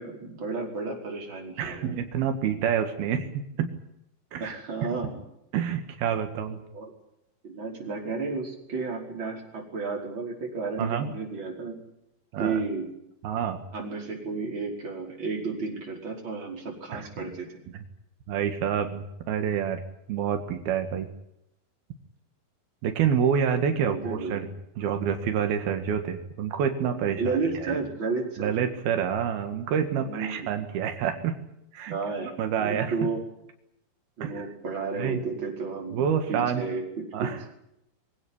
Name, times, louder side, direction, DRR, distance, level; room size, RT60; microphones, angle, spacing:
voice 1, 0.0-2.0 4.4-5.2 6.7-6.9 7.4-11.8 12.4-12.9 13.7-17.6 23.7-24.5 27.2-28.6 30.0-30.5 31.9-32.3 32.6-33.2 34.2-37.3, right 4 dB, 30° right, 1 dB, 5.7 m, -32 dB
voice 2, 1.6-3.7 4.3-4.6 5.5-6.6 10.8-11.1 12.3-12.6 13.2-13.6 16.9-17.1 18.3-19.8 20.1-21.1 22.8-24.5 24.8-27.8 28.4-31.4 31.7-32.0 32.4-33.0 34.2-34.5 35.0-35.2 35.9-36.6 37.1-37.4, right 8 dB, 85° right, 7 dB, 3.7 m, -27 dB
23.5 x 16.5 x 10.0 m, 0.81 s
omnidirectional pair, 4.3 m